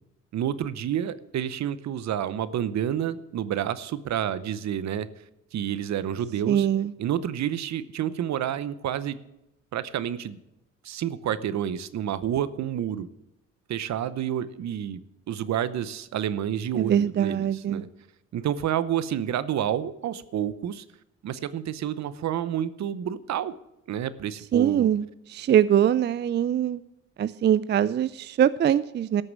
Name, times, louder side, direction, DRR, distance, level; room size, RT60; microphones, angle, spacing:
voice 1, 0.3-5.1 5.5-6.7 7.0-9.2 9.7-10.4 10.8-13.1 13.7-15.0 15.3-17.9 18.3-20.8 21.2-23.5 23.9-24.9, right 10 dB, 65° right, 16 dB, 0.8 m, -29 dB
voice 2, 6.5-6.9 16.8-17.8 24.5-25.0 25.3-26.8 27.2-29.2, right 10 dB, 35° right, 16 dB, 0.4 m, -22 dB
12.5 x 6.6 x 7.3 m, 0.89 s
cardioid pair, 90°, 30 cm